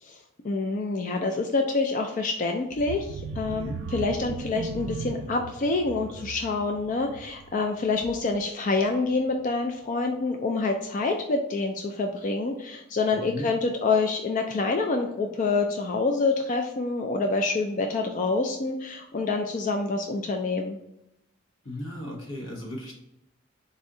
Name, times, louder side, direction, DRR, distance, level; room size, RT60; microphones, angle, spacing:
voice 1, 0.0-20.8, left 3 dB, 40° left, 4 dB, 0.3 m, -27 dB
sound 1, 2.7-8.5 8.9-9.1 9.4-9.5, right 4 dB, 60° right, 0.3 m, -38 dB
voice 2, 3.5-3.8 13.1-13.5 21.6-22.9, left 1 dB, 90° left, -1 dB, 1.3 m, -36 dB
4.1 x 2.6 x 3.7 m, 0.87 s
head